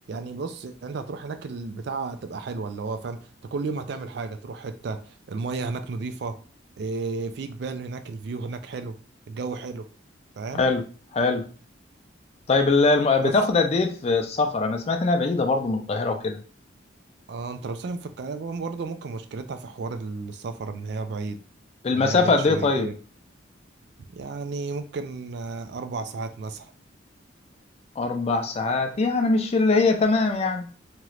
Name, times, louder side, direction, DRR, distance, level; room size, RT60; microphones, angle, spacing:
voice 1, 0.1-6.3 6.8-8.9 9.3-9.9 10.4-10.7 13.2-13.3 17.3-21.4 21.9-22.9 24.1-26.7, right 4 dB, 60° right, 0.4 m, -33 dB
voice 2, 11.1-11.4 12.5-16.4 21.8-22.9 28.0-30.7, left 3 dB, 35° left, 0.4 m, -22 dB
2.9 x 2.4 x 3.1 m
head